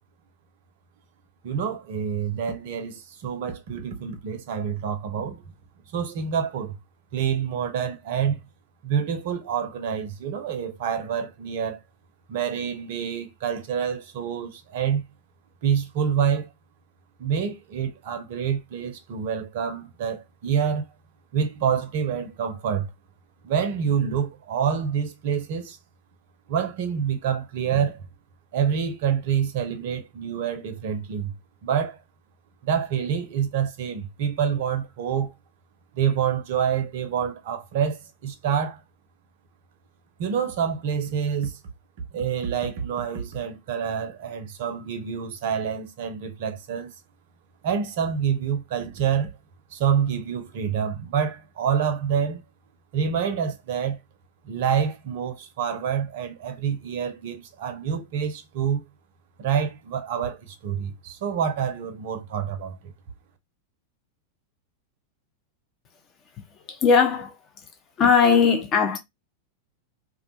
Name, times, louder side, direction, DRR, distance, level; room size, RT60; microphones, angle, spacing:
voice 1, 1.4-5.4 5.9-6.8 7.1-8.4 8.8-11.8 12.3-15.1 15.6-16.5 17.2-20.9 21.3-22.9 23.4-25.8 26.5-28.1 28.5-31.3 31.6-32.0 32.6-35.3 35.9-38.8 40.2-41.6 42.1-46.9 47.6-49.3 49.7-52.4 52.9-54.0 54.4-58.8 59.4-62.9, right 7 dB, 50° right, 0.5 m, -27 dB
voice 2, 66.7-67.3 68.0-69.0, left 6 dB, 30° left, 0.6 m, -19 dB
2.3 x 2.2 x 2.8 m
figure-of-eight pair, 90°, 0 cm